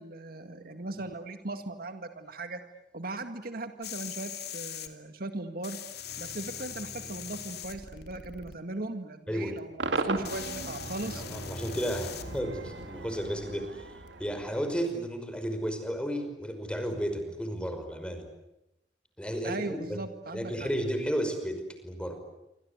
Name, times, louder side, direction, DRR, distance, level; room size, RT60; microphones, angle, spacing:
voice 1, 0.0-2.6 2.9-5.8 6.2-11.2 19.4-20.7, right 2 dB, 55° right, 8 dB, 1.9 m, -38 dB
sound 1, 3.8-4.9 5.6-8.5 9.6-9.7 10.2-12.4 14.1-14.2, left 7 dB, 65° left, 2.8 m, -41 dB
Cheering / Crowd / Fireworks, 9.8-15.1, right 3 dB, 80° right, 2.6 m, -38 dB
voice 2, 11.2-18.3 19.2-20.0 20.3-22.2, equal, 5° left, 7 dB, 5.5 m, -33 dB
27.5 x 26.0 x 8.2 m, 0.90 s
head